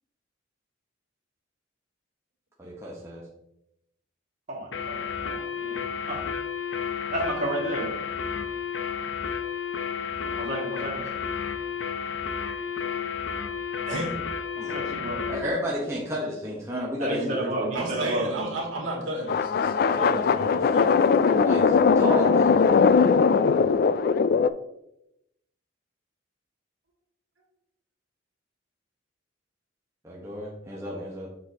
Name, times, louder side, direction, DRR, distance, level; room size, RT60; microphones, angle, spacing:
voice 1, 2.6-3.2 10.2-10.4 14.6-18.2 19.9-20.3 21.1-22.5 30.0-31.3, equal, 15° right, -4 dB, 1.1 m, -33 dB
voice 2, 4.5-6.2 7.1-7.9 10.4-11.0 14.7-15.5 17.0-18.5, right 1 dB, 35° right, -4 dB, 2.2 m, -32 dB
sound 1, 4.7-15.5, left 7 dB, 70° left, 0.7 m, -32 dB
voice 3, 13.9-14.2 17.7-21.0, right 1 dB, 75° right, -3 dB, 2.5 m, -33 dB
sound 2, 19.3-24.5, left 5 dB, 50° left, 0.3 m, -20 dB
7.6 x 6.1 x 2.9 m, 0.81 s
head